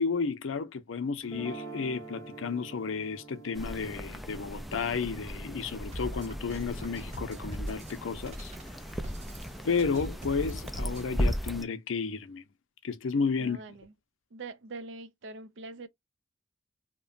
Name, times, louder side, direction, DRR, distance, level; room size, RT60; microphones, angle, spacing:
voice 1, 0.0-8.5 9.6-12.4 12.8-13.6, left 5 dB, 80° left, 0.5 m, -32 dB
sound 1, 1.2-7.3, right 3 dB, 20° left, 0.7 m, -47 dB
sound 2, 3.5-11.6, equal, ahead, 0.3 m, -36 dB
sound 3, 5.9-11.1, equal, 35° right, 0.8 m, -42 dB
voice 2, 13.4-13.9 14.3-15.9, right 3 dB, 65° right, 0.5 m, -43 dB
2.9 x 2.1 x 2.4 m
head